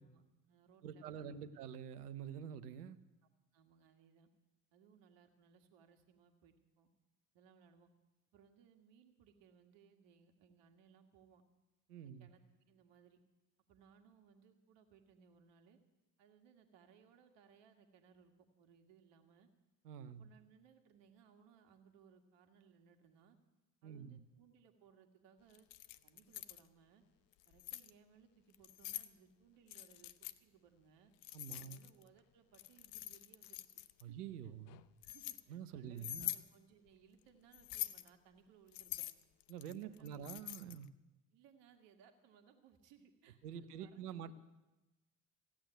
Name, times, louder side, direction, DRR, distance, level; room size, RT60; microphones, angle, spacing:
voice 1, 0.0-1.6 3.5-4.3 4.7-6.9 7.3-7.9 8.3-11.4 12.0-13.2 13.7-15.8 16.2-19.5 20.1-23.4 23.8-25.7 26.0-27.0 27.5-31.1 31.6-33.8 34.1-34.2 35.0-39.1 39.7-40.2 41.3-44.3, right 7 dB, 65° right, 6 dB, 1.9 m, -66 dB
voice 2, 0.8-3.0 11.9-12.3 19.8-20.3 23.8-24.2 31.3-31.8 34.0-34.8 35.5-36.3 39.5-40.9 43.4-44.3, right 8 dB, 85° right, 14 dB, 0.8 m, -47 dB
Keys jangling, 25.5-26.6 27.3-27.9 28.5-29.1 29.7-30.4 31.2-32.1 32.5-34.0 34.7-35.4 36.0-36.5 37.5-38.1 38.7-40.9, left 16 dB, 65° left, 0.8 m, -45 dB
15.5 x 8.8 x 9.2 m, 1.0 s
hypercardioid pair, 55°, 45 cm